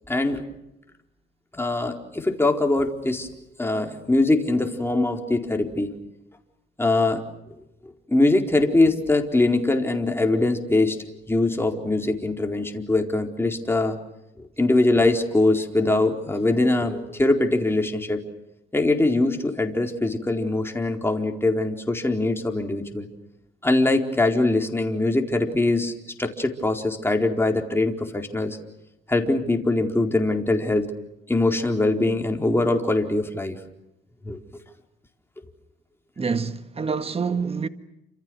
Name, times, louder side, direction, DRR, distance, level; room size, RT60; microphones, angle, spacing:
voice 1, 0.1-0.4 1.5-3.3 3.6-5.9 6.8-7.2 7.8-11.0 11.3-14.0 14.4-18.2 18.7-23.1 23.6-25.9 26.2-28.6 29.1-30.9 31.3-33.6 34.2-34.6, left 2 dB, 10° left, 4.4 m, -22 dB
voice 2, 36.2-37.7, right 5 dB, 30° right, 1.7 m, -26 dB
30.0 x 27.5 x 6.5 m
cardioid pair, 90°, 20 cm